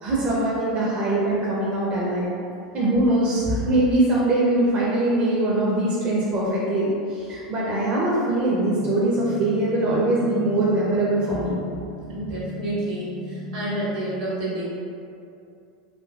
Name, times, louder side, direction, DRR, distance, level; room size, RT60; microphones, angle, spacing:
voice 1, 0.0-2.3 2.7-11.6, right 1 dB, 35° right, -6 dB, 0.6 m, -22 dB
sound 1, 8.7-14.0, equal, 40° left, 0.5 m, -37 dB
voice 2, 12.1-14.6, right 1 dB, 75° right, -7 dB, 1.3 m, -29 dB
3.7 x 2.5 x 2.3 m, 2.5 s
hypercardioid pair, 90°, 4 cm